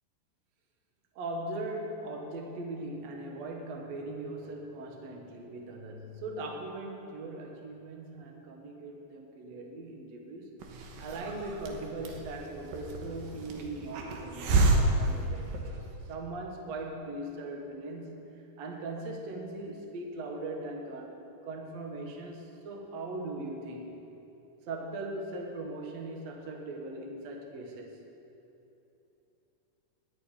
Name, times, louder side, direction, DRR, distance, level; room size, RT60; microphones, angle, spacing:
voice 1, 1.2-10.6 11.0-15.7 16.1-23.9 24.7-28.0, right 2 dB, 60° right, 2 dB, 2.0 m, -40 dB
Hiss, 10.6-16.1, right 2 dB, 75° right, 2.8 m, -30 dB
11.0 x 9.1 x 9.0 m, 3.0 s
omnidirectional pair, 4.5 m